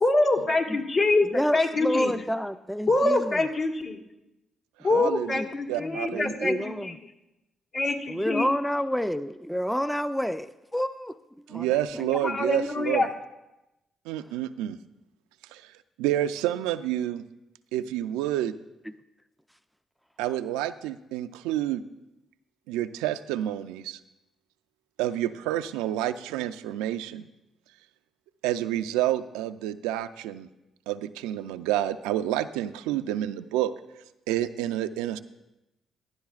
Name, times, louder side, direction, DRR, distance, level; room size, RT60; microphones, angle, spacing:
voice 1, 0.0-2.1 2.9-4.0 4.8-7.0 7.7-8.5 12.2-13.1, left 2 dB, 60° left, -2 dB, 1.7 m, -25 dB
voice 2, 1.3-3.5 5.0-5.1 5.4-5.5 5.8-7.0 8.1-11.2 11.5-11.7 12.0-12.1, equal, ahead, 11 dB, 0.4 m, -29 dB
voice 3, 4.9-5.4 5.7-6.5 11.5-13.1 14.1-14.8 15.5-15.7 16.0-17.2 17.7-18.5 20.2-21.8 22.7-24.0 25.0-27.3 28.4-30.5 30.9-33.7 34.3-35.2, right 13 dB, 85° right, 11 dB, 0.3 m, -29 dB
17.0 x 11.0 x 2.4 m, 0.94 s
supercardioid pair, 50°, 0 cm